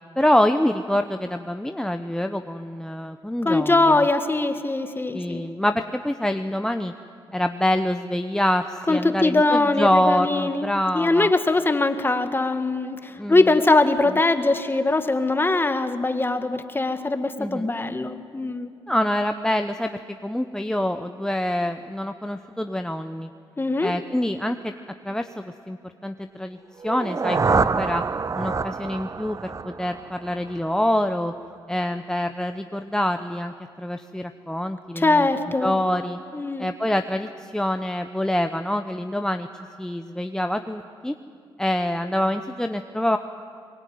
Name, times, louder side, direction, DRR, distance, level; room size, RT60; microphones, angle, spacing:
voice 1, 0.2-4.0 5.1-6.9 7.3-11.3 13.2-13.4 17.4-17.7 18.9-23.3 23.8-24.7 25.0-25.8 26.0-26.6 26.8-28.0 28.3-31.3 31.7-35.3 35.6-36.2 36.6-39.5 39.8-41.1 41.6-43.2, left 1 dB, 5° left, 6 dB, 1.0 m, -25 dB
voice 2, 3.4-5.5 8.9-10.7 10.9-18.7 23.6-23.9 35.0-35.7 36.3-36.7, left 2 dB, 25° left, 8 dB, 1.9 m, -21 dB
sound 1, 26.8-30.7, right 4 dB, 35° right, 0.6 m, -26 dB
23.0 x 22.0 x 9.5 m, 2.4 s
cardioid pair, 70°, 10 cm